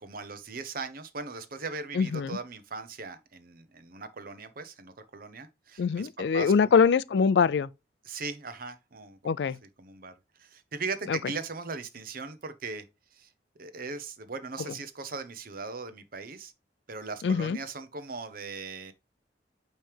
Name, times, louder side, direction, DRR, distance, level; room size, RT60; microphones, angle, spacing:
voice 1, 0.0-6.7 8.0-9.2 9.8-10.1 10.4-12.8 13.1-13.3 13.6-16.5 16.9-18.9, right 4 dB, 55° right, 0.9 m, -39 dB
voice 2, 2.0-2.4 5.8-7.7 9.2-9.6 11.1-11.2 17.2-17.6, left 6 dB, 70° left, 0.4 m, -23 dB
8.8 x 3.2 x 3.4 m
head